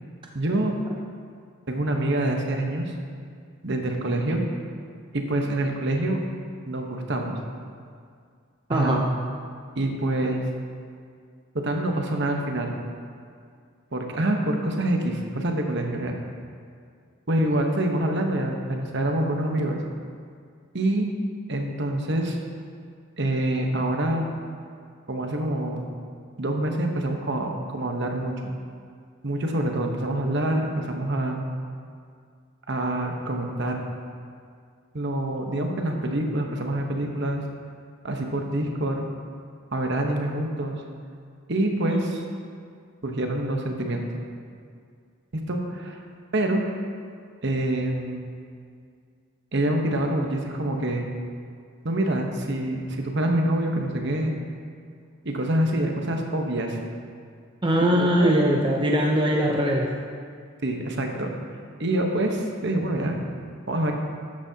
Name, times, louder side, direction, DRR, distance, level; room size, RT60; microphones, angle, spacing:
voice 1, 0.3-0.8 1.7-2.9 3.6-4.4 5.1-6.2 6.7-7.4 8.7-9.0 9.8-10.5 11.5-12.8 13.9-16.2 17.3-19.8 20.7-21.1 21.5-22.4 23.2-24.2 25.1-25.9 26.4-28.4 29.2-31.4 32.7-33.8 34.9-37.4 38.0-39.1 39.7-40.8 41.5-42.2 43.0-44.0 45.3-46.0 46.3-46.6 47.4-48.3 49.5-51.1 51.8-54.3 55.2-56.8 57.8-58.4 60.6-61.3 61.8-63.2 63.7-63.9, right 1 dB, 50° right, 2 dB, 1.0 m, -26 dB
voice 2, 8.7-9.0 57.6-59.9, equal, 20° right, -1 dB, 0.6 m, -21 dB
13.0 x 9.5 x 2.8 m, 2.2 s
head